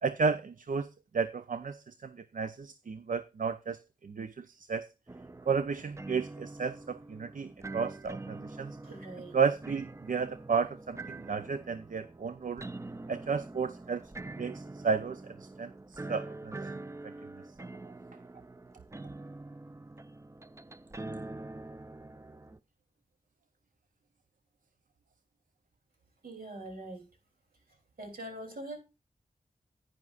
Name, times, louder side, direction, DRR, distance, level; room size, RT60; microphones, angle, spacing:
voice 1, 0.0-4.9 5.5-8.8 9.3-12.7 13.1-14.1 14.4-17.4, right 5 dB, 65° right, 0.6 m, -33 dB
sound 1, 5.1-22.6, right 2 dB, 20° right, 0.5 m, -45 dB
voice 2, 8.8-9.3 26.2-27.0 28.0-28.8, right 1 dB, 80° right, 3.2 m, -43 dB
10.5 x 9.7 x 2.5 m
cardioid pair, 55°, 15 cm